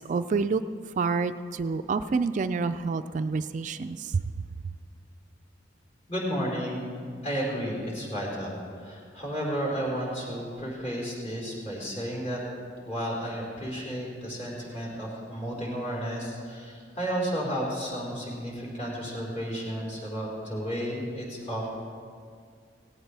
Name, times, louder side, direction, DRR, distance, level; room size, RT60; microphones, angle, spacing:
voice 1, 0.1-0.6 1.0-4.1, right 4 dB, 45° right, 10 dB, 0.3 m, -28 dB
voice 2, 6.1-6.8 7.2-12.4 12.8-21.7, equal, 35° left, -5 dB, 4.5 m, -32 dB
18.0 x 17.0 x 3.4 m, 2.2 s
head